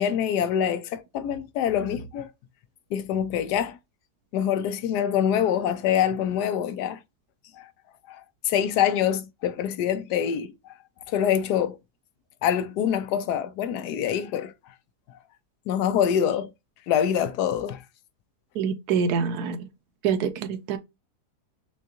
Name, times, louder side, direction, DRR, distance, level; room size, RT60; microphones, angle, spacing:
voice 1, 0.0-2.3 2.9-3.8 4.3-7.0 7.5-7.7 8.1-10.7 11.1-11.8 12.4-14.5 15.7-16.5 16.9-17.8, left 9 dB, 90° left, 1.2 m, -25 dB
voice 2, 18.5-19.7 20.0-20.8, right 6 dB, 80° right, 1.2 m, -26 dB
6.2 x 2.3 x 2.9 m
omnidirectional pair, 1.7 m